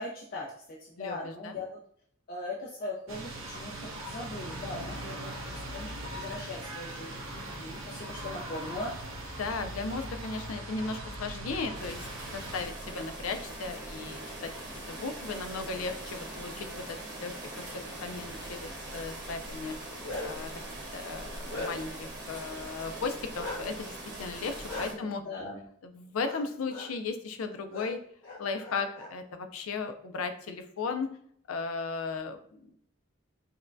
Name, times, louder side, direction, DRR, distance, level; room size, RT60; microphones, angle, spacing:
voice 1, 0.0-1.8 2.3-8.9 24.9-25.6, left 2 dB, 45° left, -4 dB, 0.6 m, -40 dB
voice 2, 1.0-1.6 9.4-12.1 12.3-14.5 14.9-20.5 20.9-25.2 25.8-28.0 28.4-31.2 31.5-32.8, left 4 dB, 90° left, 8 dB, 0.5 m, -36 dB
sound 1, 3.1-12.6, right 1 dB, 80° right, 0.8 m, -40 dB
sound 2, 11.7-24.9, right 1 dB, 55° right, 1.2 m, -42 dB
Bark, 19.7-20.5 21.0-22.0 23.4-23.6 24.7-24.8 26.2-26.4 26.7-26.9 27.7-27.9 28.2-29.1, left 2 dB, 65° left, 1.1 m, -38 dB
5.4 x 2.2 x 2.6 m, 0.64 s
head